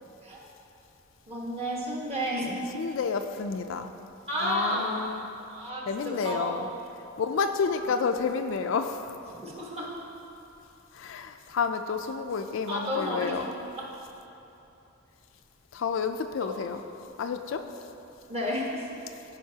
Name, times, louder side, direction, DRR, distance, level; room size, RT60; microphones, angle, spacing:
voice 1, 1.3-2.7 4.3-4.9 5.5-6.6 7.7-7.9 9.3-9.9 12.7-13.5 13.8-13.9 16.4-16.5 18.3-18.9, equal, 30° right, -4 dB, 1.4 m, -32 dB
voice 2, 2.7-3.9 4.4-5.3 5.9-6.7 7.2-9.1 10.9-13.5 15.7-16.8 17.2-17.6, left 5 dB, 65° left, 7 dB, 0.4 m, -30 dB
14.0 x 5.1 x 2.8 m, 2.9 s
head